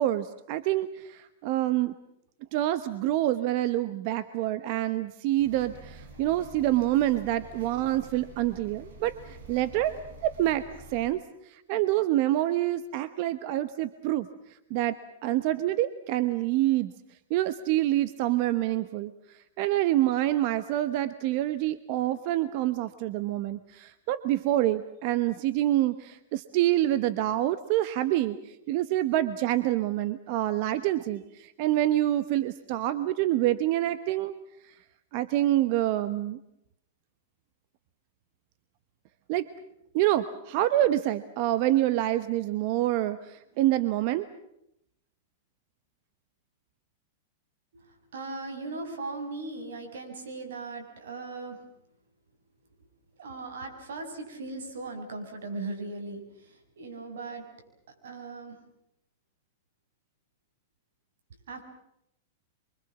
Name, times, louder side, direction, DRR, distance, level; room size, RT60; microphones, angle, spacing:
voice 1, 0.0-1.9 2.5-9.9 10.2-14.3 14.7-16.9 17.3-34.4 34.6-34.8 35.1-36.4 39.3-39.5 39.9-44.3, right 14 dB, 45° right, 13 dB, 1.0 m, -27 dB
sound 1, 5.4-11.1, right 1 dB, 60° right, 7.0 m, -48 dB
voice 2, 47.7-51.6 53.2-57.5 58.0-58.6 61.5-61.6, right 3 dB, 85° right, 5 dB, 7.0 m, -38 dB
27.0 x 24.5 x 7.3 m, 0.78 s
supercardioid pair, 150°, 0 cm